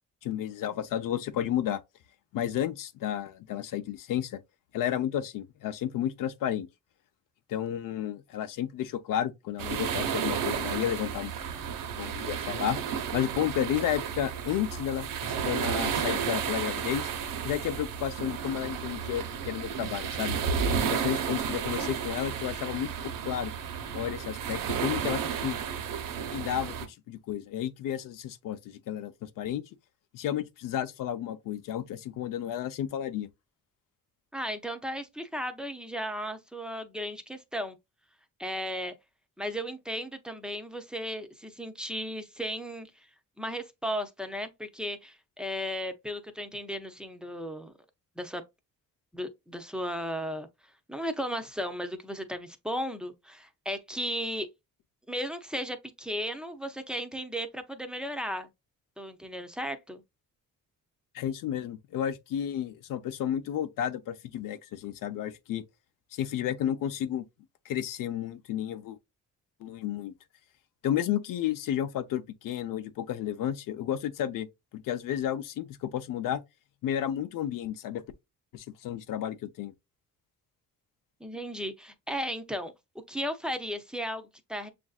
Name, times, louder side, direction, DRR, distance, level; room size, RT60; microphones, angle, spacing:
voice 1, 0.2-1.8 2.3-4.4 4.7-6.7 7.5-11.3 11.9-12.8 13.1-17.1 17.4-20.4 20.9-23.5 23.9-25.6 26.3-29.6 30.1-33.3 61.1-65.6 66.1-67.2 67.6-69.0 69.6-70.1 70.8-74.5 74.7-76.4 76.8-78.0 78.5-79.7, left 10 dB, 80° left, 0.6 m, -32 dB
sound 1, 9.6-26.9, right 7 dB, 75° right, 0.9 m, -32 dB
voice 2, 34.3-37.8 38.4-38.9 39.4-42.9 43.4-47.7 48.2-48.4 49.1-50.5 50.9-54.5 55.1-58.5 59.0-60.0 81.2-82.7 83.1-84.7, equal, 5° right, 0.5 m, -35 dB
7.1 x 2.6 x 2.4 m
cardioid pair, 160°, 32 cm